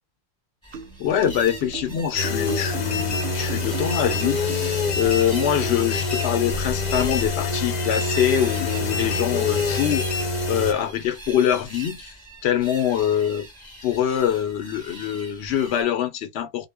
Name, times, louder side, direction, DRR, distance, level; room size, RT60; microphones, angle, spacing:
sound 1, 0.6-15.8, right 1 dB, 5° left, 1.2 m, -40 dB
sound 2, 0.7-5.0, right 6 dB, 80° right, 0.9 m, -37 dB
voice 1, 1.0-12.1 12.4-13.5 13.8-16.7, left 10 dB, 80° left, 0.9 m, -24 dB
sound 3, 2.2-10.7, left 4 dB, 45° left, 0.7 m, -26 dB
2.1 x 2.1 x 3.4 m
omnidirectional pair, 1.1 m